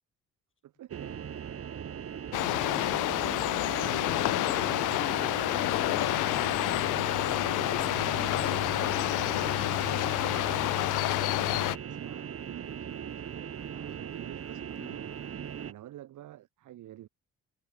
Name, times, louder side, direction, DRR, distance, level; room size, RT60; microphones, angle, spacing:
voice 1, 0.6-1.3 2.9-4.3 6.9-8.2 10.5-15.1 15.3-17.1, right 13 dB, 80° right, 5.7 m, -49 dB
sound 1, 0.9-15.7, right 8 dB, 50° right, 2.1 m, -39 dB
sound 2, 2.3-11.8, left 19 dB, 90° left, 0.7 m, -28 dB
voice 2, 2.9-6.0 7.1-9.8 14.8-15.0, left 6 dB, 40° left, 5.6 m, -46 dB
cardioid pair, 90°, 30 cm